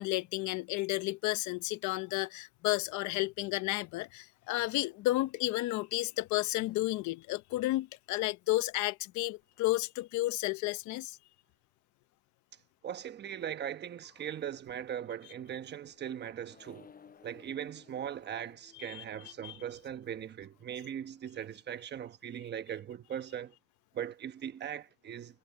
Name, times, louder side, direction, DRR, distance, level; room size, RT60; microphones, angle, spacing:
voice 1, 0.0-11.2 18.8-19.0 19.4-19.6, left 18 dB, 75° left, 0.9 m, -32 dB
voice 2, 12.8-16.9 17.2-23.5 23.9-25.4, right 9 dB, 35° right, 1.1 m, -40 dB
Accelerating revving vroom, 15.2-21.7, left 6 dB, 30° left, 8.0 m, -61 dB
cardioid pair, 140°, 30 cm